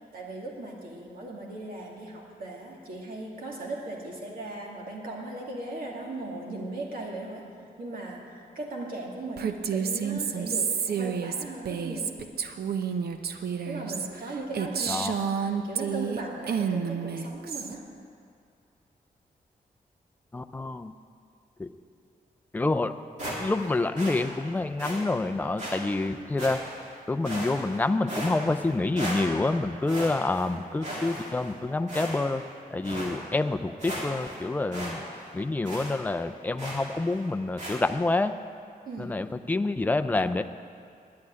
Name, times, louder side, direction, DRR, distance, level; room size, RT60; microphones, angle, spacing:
voice 1, 0.1-12.2 13.6-15.1 15.5-17.8 38.9-39.3, right 2 dB, 65° right, -2 dB, 2.3 m, -38 dB
Female speech woman speaking, 9.4-16.2 16.5-17.7, right 7 dB, 85° right, 0.7 m, -30 dB
voice 2, 14.9-15.2 20.3-20.9 21.6-21.7 22.5-22.9 23.4-26.6 27.1-32.4 32.7-35.0 35.3-38.3 39.0-40.4, left 2 dB, 10° left, 9 dB, 0.4 m, -27 dB
sound 1, 23.2-23.7 24.0-24.2 24.8-25.0 25.6-25.8 26.4-26.8 27.2-27.8 28.1-28.7 29.0-29.5 29.9-30.5 30.8-31.5 31.9-32.4 32.8-33.1 33.5-33.6 33.8-34.4 34.7-34.9 35.2-35.3 35.6-35.9 36.6-36.9 37.6-37.8, equal, 50° right, 3.1 m, -36 dB
10.5 x 8.4 x 9.8 m, 2.4 s
wide cardioid pair, 180°, 16 cm